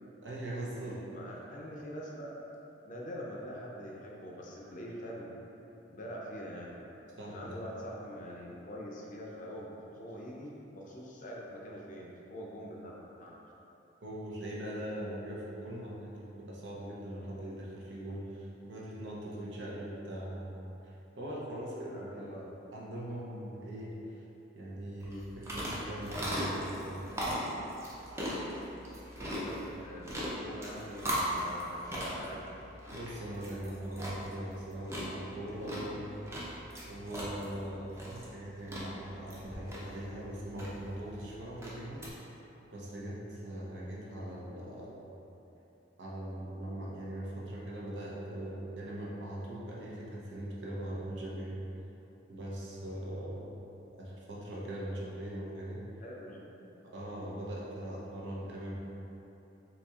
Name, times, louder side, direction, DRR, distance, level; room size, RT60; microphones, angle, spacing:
voice 1, 0.2-1.0 7.2-7.6 14.0-23.9 24.5-27.0 29.4-29.5 32.9-36.0 36.8-42.0 42.7-45.0 46.0-51.6 52.3-53.5 54.0-55.8 56.8-58.7, right 1 dB, 75° right, -5 dB, 0.7 m, -41 dB
voice 2, 0.8-2.4 2.8-5.3 5.9-6.8 7.3-13.4 21.9-22.4 29.2-32.4 44.8-44.9 56.0-56.7, equal, 45° left, -3 dB, 0.5 m, -44 dB
sound 1, 25.0-42.1, equal, 15° right, 0.5 m, -39 dB
4.1 x 2.9 x 2.3 m, 3.0 s
head